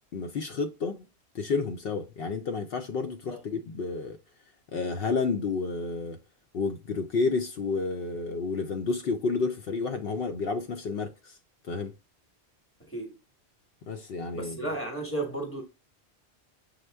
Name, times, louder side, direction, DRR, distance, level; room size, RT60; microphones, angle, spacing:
voice 1, 0.1-1.0 1.3-4.2 4.7-6.2 6.5-11.3 11.7-11.9 13.9-14.6, left 4 dB, 65° left, 0.7 m, -30 dB
voice 2, 14.3-15.6, right 2 dB, 15° left, 1.0 m, -33 dB
6.3 x 2.1 x 3.3 m
omnidirectional pair, 1.1 m